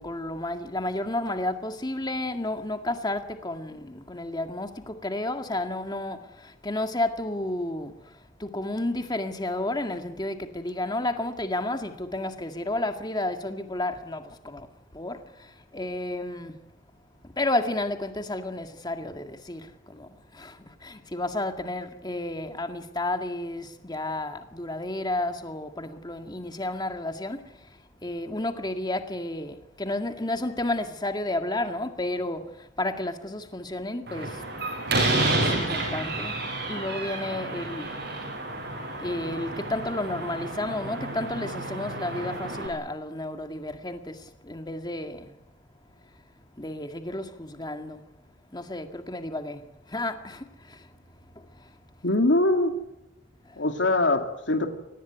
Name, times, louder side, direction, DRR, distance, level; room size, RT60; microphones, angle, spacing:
voice 1, 0.0-7.9 8.4-14.7 14.9-15.2 15.7-16.6 17.4-27.4 28.0-32.5 32.8-34.4 35.2-36.4 36.7-37.9 39.0-44.2 44.4-45.3 46.6-48.0 48.5-49.6 49.9-50.4 50.7-50.8, left 1 dB, 25° left, 2.0 m, -31 dB
Slam, 34.1-42.7, right 2 dB, 60° right, 7.6 m, -30 dB
voice 2, 52.0-52.8 53.6-54.7, left 2 dB, 80° left, 2.8 m, -22 dB
24.0 x 19.0 x 9.6 m
head